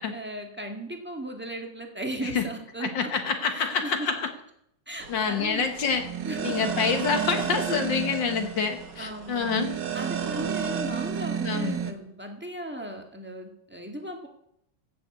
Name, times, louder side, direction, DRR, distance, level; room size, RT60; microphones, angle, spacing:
voice 1, 0.1-3.1 3.5-4.1 4.9-5.7 6.2-6.6 9.0-9.5 9.9-14.3, right 1 dB, 5° right, 3 dB, 1.2 m, -36 dB
voice 2, 2.8-4.3 5.1-6.1 6.4-9.7 11.4-11.7, left 5 dB, 55° left, 7 dB, 1.3 m, -27 dB
sound 1, 5.0-11.9, right 7 dB, 60° right, 1.2 m, -32 dB
15.5 x 7.0 x 8.2 m, 0.74 s
omnidirectional pair, 3.7 m